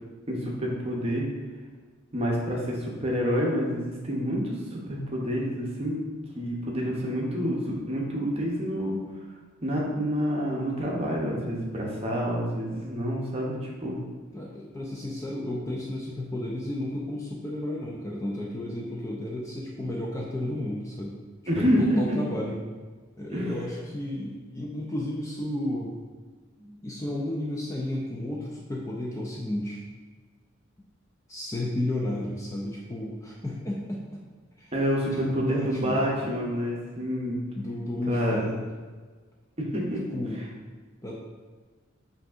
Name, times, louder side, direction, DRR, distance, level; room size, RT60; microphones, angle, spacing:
voice 1, 0.3-1.3 2.1-6.0 6.3-9.0 9.6-14.0 21.5-22.2 23.3-23.7 26.6-26.7 34.7-37.4 38.1-38.5 39.6-40.0, equal, 30° right, -3 dB, 0.7 m, -28 dB
voice 2, 14.3-21.2 21.6-22.6 23.2-25.9 26.8-29.8 31.3-34.0 34.6-34.7 35.3-36.0 37.6-38.7 40.1-40.4 41.0-41.1, left 1 dB, 15° left, -3 dB, 0.3 m, -33 dB
5.7 x 2.7 x 2.4 m, 1.4 s
head